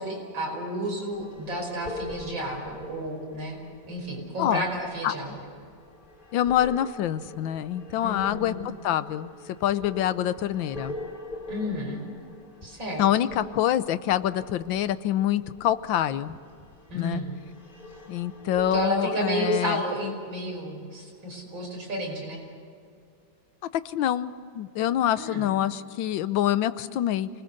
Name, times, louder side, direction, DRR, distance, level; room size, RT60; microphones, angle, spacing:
voice 1, 0.0-3.6 3.9-5.3 8.0-8.7 11.5-12.0 12.6-13.3 16.9-17.3 18.7-22.4 25.2-25.5, equal, 80° right, 0 dB, 6.0 m, -31 dB
sound 1, 1.1-19.5, left 1 dB, 25° left, 3.0 m, -43 dB
voice 2, 6.3-8.6 8.8-9.3 9.6-11.0 13.0-16.4 16.9-17.2 18.1-19.8 23.7-27.3, left 11 dB, 85° left, 14 dB, 1.5 m, -26 dB
28.0 x 20.0 x 6.6 m, 2.3 s
omnidirectional pair, 2.0 m